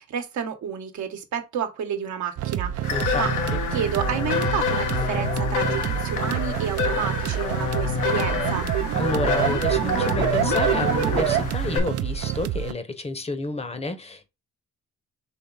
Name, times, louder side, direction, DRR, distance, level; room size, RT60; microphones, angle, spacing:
voice 1, 0.0-3.3 3.7-8.7, right 8 dB, 70° right, 1.0 m, -30 dB
sound 1, 2.4-12.7, right 11 dB, 55° right, 0.5 m, -29 dB
sound 2, 2.8-11.8, left 7 dB, 85° left, 0.9 m, -28 dB
voice 2, 2.9-3.6 8.9-14.3, left 2 dB, 20° left, 0.8 m, -30 dB
sound 3, 4.5-11.4, right 10 dB, 90° right, 0.9 m, -28 dB
4.4 x 3.0 x 3.9 m
cardioid pair, 90°, 30 cm